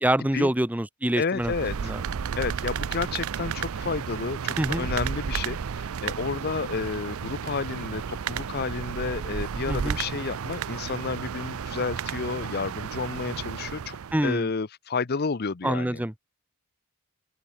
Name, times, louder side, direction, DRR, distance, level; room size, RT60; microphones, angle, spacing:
voice 1, 0.0-1.5 1.8-2.0 4.6-4.9 9.7-10.0 14.1-14.5 15.6-16.1, right 1 dB, 5° right, 0.7 m, -26 dB
voice 2, 1.1-1.7 2.4-14.0 14.2-16.0, left 4 dB, 45° left, 0.6 m, -31 dB
sound 1, 1.4-14.3, right 7 dB, 70° right, 0.5 m, -32 dB
head